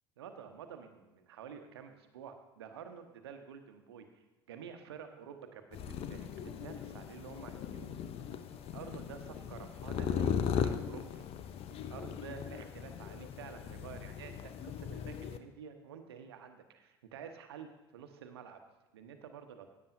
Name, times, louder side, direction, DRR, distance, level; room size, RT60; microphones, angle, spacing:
voice 1, 0.2-4.1 4.5-5.6 6.1-11.2 11.9-18.6 18.9-19.7, right 7 dB, 75° right, 7 dB, 1.0 m, -50 dB
sound 1, 5.7-15.4, left 8 dB, 45° left, 0.7 m, -38 dB
15.5 x 8.7 x 2.7 m, 1.1 s
figure-of-eight pair, 65°, 14 cm